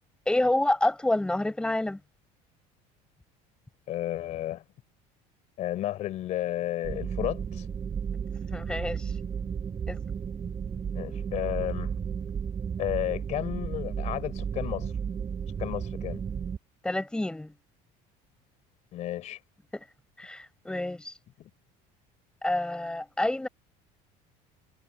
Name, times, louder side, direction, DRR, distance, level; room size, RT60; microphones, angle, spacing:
voice 1, 0.3-2.0 8.5-9.1 9.9-10.0 16.8-17.5 19.7-19.8 20.2-21.1 22.4-23.5, left 1 dB, 5° left, 7.7 m, -28 dB
voice 2, 3.9-4.6 5.6-7.7 10.9-11.9 12.8-14.9 15.6-16.2 18.9-19.4, left 13 dB, 45° left, 4.2 m, -32 dB
sound 1, 6.8-16.6, right 7 dB, 25° right, 7.2 m, -33 dB
cardioid pair, 160°, 16 cm